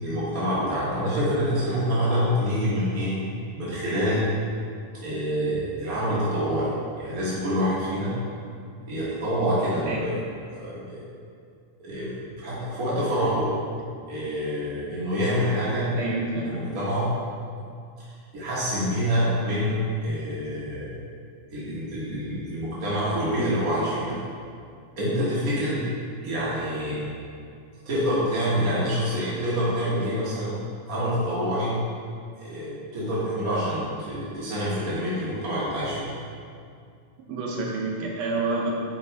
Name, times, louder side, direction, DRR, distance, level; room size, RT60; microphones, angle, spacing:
voice 1, 0.0-3.1 3.6-4.3 5.0-6.7 7.0-8.2 8.9-10.2 10.5-11.0 11.8-13.5 14.0-15.9 16.4-17.1 18.3-21.0 21.5-24.2 25.0-25.9 26.2-27.0 27.8-30.5 30.9-31.7 32.4-36.1, equal, 55° right, -9 dB, 0.9 m, -26 dB
voice 2, 9.7-10.1 15.8-16.8 37.3-38.7, right 3 dB, 70° right, -2 dB, 1.9 m, -29 dB
9.2 x 5.2 x 3.4 m, 2.3 s
omnidirectional pair, 3.5 m